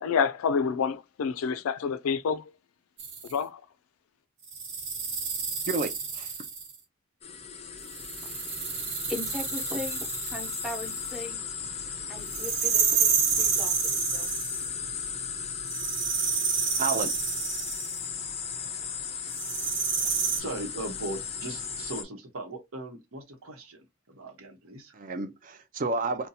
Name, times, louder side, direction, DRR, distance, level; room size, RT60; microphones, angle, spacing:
voice 1, 0.0-2.4 3.3-3.6, left 6 dB, 85° left, 0.4 m, -27 dB
sound 1, 3.0-3.3 4.5-6.8 7.9-11.1 12.3-14.7 15.7-18.0 19.3-20.4, right 6 dB, 60° right, 1.1 m, -29 dB
voice 2, 5.7-6.3 16.8-17.1 24.9-26.3, right 3 dB, 40° right, 0.4 m, -30 dB
sound 2, 7.2-22.0, left 6 dB, 30° left, 0.5 m, -36 dB
voice 3, 8.2-8.5 9.1-11.4 12.1-14.5, left 2 dB, 5° right, 0.9 m, -39 dB
voice 4, 20.0-24.9, right 2 dB, 85° right, 0.9 m, -39 dB
2.7 x 2.2 x 4.0 m
head